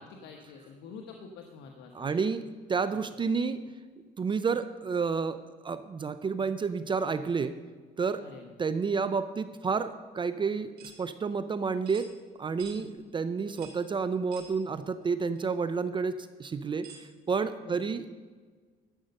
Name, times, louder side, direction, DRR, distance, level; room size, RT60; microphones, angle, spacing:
voice 1, 0.0-2.1 2.9-3.1 8.2-8.5 12.8-12.9 17.6-17.8, left 5 dB, 85° left, 3 dB, 1.1 m, -47 dB
voice 2, 1.9-2.4 2.7-3.6 4.2-5.4 5.6-7.5 8.0-8.2 8.6-12.1 12.4-18.0, right 5 dB, 30° right, 12 dB, 0.5 m, -30 dB
sound 1, 10.8-11.0 11.9-12.1 12.6-12.8 13.6-13.8 14.3-14.5 15.4-15.5 16.8-17.1, right 6 dB, 65° right, 2.6 m, -48 dB
12.5 x 7.8 x 5.3 m, 1.5 s
cardioid pair, 110°, 17 cm